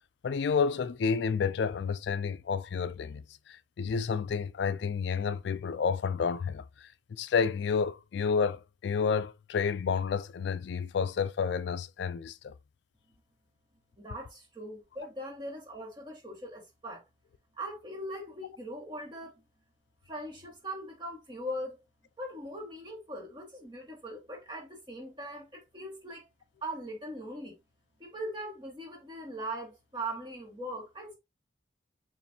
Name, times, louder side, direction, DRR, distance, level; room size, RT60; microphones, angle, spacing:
voice 1, 0.2-6.6 7.1-12.5, left 6 dB, 60° left, 0.3 m, -30 dB
voice 2, 14.0-17.0 17.5-19.3 20.1-21.8 22.2-26.3 26.6-27.5 28.0-31.2, right 1 dB, 25° right, 1.5 m, -40 dB
6.9 x 2.5 x 2.7 m
head